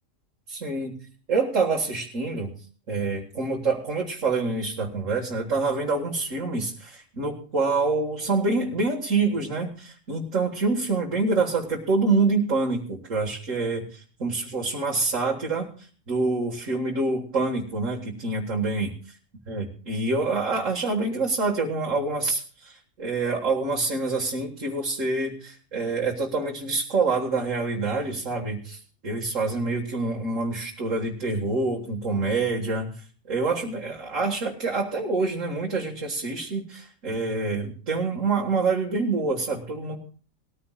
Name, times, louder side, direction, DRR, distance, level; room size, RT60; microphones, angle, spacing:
voice 1, 0.5-1.0 1.3-2.5 2.9-18.9 19.5-33.0 33.3-40.0, right 3 dB, 85° right, -3 dB, 2.2 m, -26 dB
20.5 x 14.0 x 2.4 m, 0.41 s
omnidirectional pair, 1.3 m